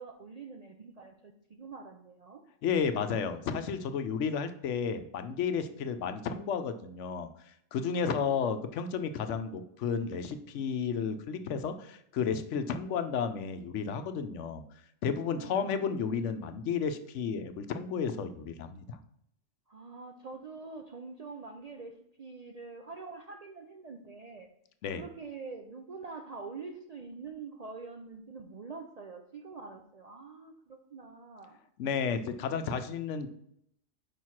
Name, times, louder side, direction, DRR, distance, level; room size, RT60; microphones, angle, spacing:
voice 1, 0.0-2.4 7.8-8.6 15.3-16.1 19.7-24.5 24.9-31.6, right 4 dB, 55° right, 4 dB, 0.4 m, -45 dB
voice 2, 2.6-7.3 7.7-14.6 15.0-19.0 24.8-25.0 31.8-33.3, left 6 dB, 70° left, 9 dB, 0.9 m, -32 dB
5.0 x 4.6 x 5.7 m, 0.72 s
omnidirectional pair, 1.3 m